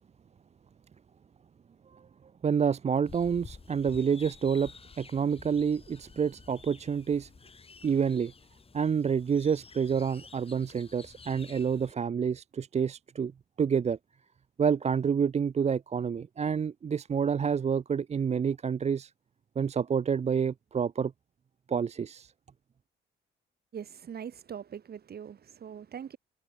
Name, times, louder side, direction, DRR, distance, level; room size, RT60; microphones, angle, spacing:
voice 1, 2.4-4.7 5.0-7.3 7.8-8.3 8.7-13.3 13.6-14.0 14.6-19.1 19.6-21.1 21.7-22.3, right 7 dB, 35° right, 0.6 m, -28 dB
sound 1, 3.0-11.9, left 4 dB, 30° left, 2.1 m, -52 dB
voice 2, 23.7-26.2, right 8 dB, 50° right, 2.6 m, -42 dB
cardioid pair, 90°, 20 cm